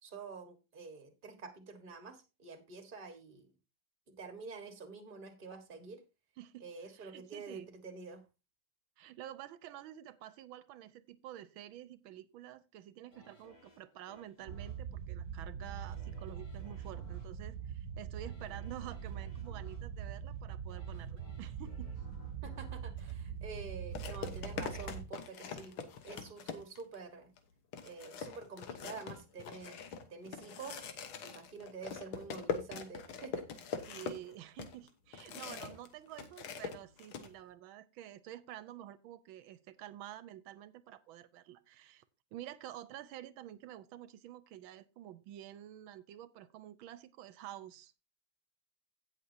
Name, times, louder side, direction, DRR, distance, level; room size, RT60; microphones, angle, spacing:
voice 1, 0.0-3.5 4.1-6.0 6.6-8.2 22.4-25.7 26.0-27.3 27.8-29.8 30.1-30.8 31.2-33.5, right 4 dB, 30° right, 7 dB, 1.5 m, -48 dB
voice 2, 6.9-7.7 9.0-21.9 33.9-42.0 42.3-47.9, right 12 dB, 85° right, 15 dB, 1.5 m, -49 dB
sound 1, 13.1-24.1 24.5-24.6, left 1 dB, 40° left, 2.7 m, -62 dB
sound 2, 14.5-25.1, right 8 dB, 55° right, 0.9 m, -43 dB
sound 3, 23.0-23.1 24.0-27.0 27.4-27.5 27.7-35.9 36.1-37.3, left 6 dB, 90° left, 1.9 m, -42 dB
16.5 x 6.4 x 2.7 m, 0.27 s
omnidirectional pair, 2.2 m